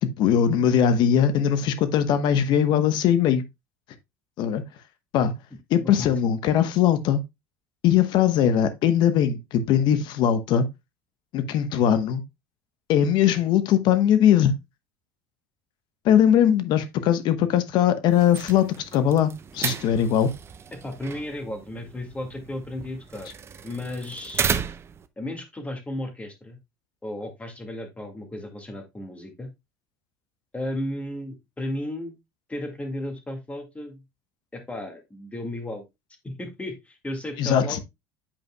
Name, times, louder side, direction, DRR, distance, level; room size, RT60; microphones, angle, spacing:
voice 1, 0.0-3.4 4.4-4.6 5.1-5.3 5.7-7.2 7.8-10.7 11.3-12.2 12.9-14.6 16.0-20.3 37.4-37.8, left 9 dB, 60° left, 1.0 m, -20 dB
voice 2, 5.7-6.1 20.8-23.3 23.6-24.5 25.2-26.6 27.0-29.5 30.5-32.2 32.5-34.0 34.5-35.8 36.2-37.8, left 1 dB, 15° left, 1.9 m, -34 dB
sound 1, 18.1-25.1, right 7 dB, 30° right, 0.6 m, -34 dB
8.6 x 5.2 x 2.2 m
supercardioid pair, 95°, 9 cm